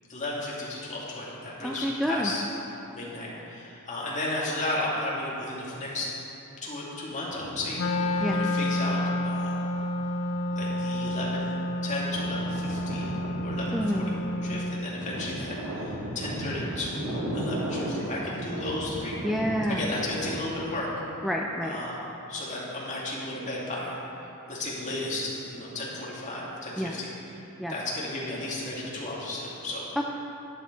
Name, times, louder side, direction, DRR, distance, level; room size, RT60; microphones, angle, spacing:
voice 1, 0.1-2.4 2.9-6.1 6.6-9.7 10.5-19.2 19.7-20.9 21.6-22.0 22.3-24.0 24.5-27.1 27.7-29.9, left 2 dB, 35° left, -6 dB, 2.3 m, -34 dB
voice 2, 1.6-2.3 8.2-8.4 13.7-14.1 19.2-19.8 21.2-21.8 26.8-27.0 27.6-27.8 30.0-30.1, equal, ahead, 0 dB, 0.4 m, -28 dB
sound 1, 7.3-9.4 10.0-20.8, right 1 dB, 75° right, 1.9 m, -36 dB
Wind instrument woodwind instrument, 7.7-14.9, left 1 dB, 70° left, 0.6 m, -30 dB
10.5 x 9.4 x 4.6 m, 2.9 s
head